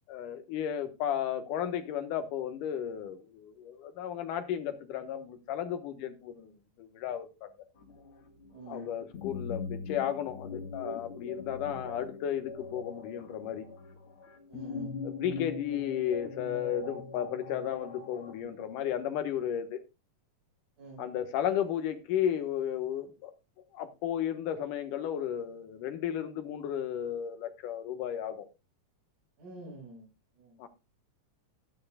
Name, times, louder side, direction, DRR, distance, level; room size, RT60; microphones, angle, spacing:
voice 1, 0.1-6.5 6.8-7.7 8.7-13.7 15.0-19.8 21.0-23.3 23.7-28.5 30.6-30.7, left 10 dB, 70° left, 2.8 m, -34 dB
sound 1, 7.8-18.4, left 4 dB, 50° left, 1.9 m, -42 dB
voice 2, 8.5-8.9 11.6-11.8 14.5-14.9 20.8-21.1 29.4-30.1 30.4-30.6, right 2 dB, 60° right, 7.1 m, -47 dB
12.5 x 12.5 x 2.3 m
omnidirectional pair, 4.0 m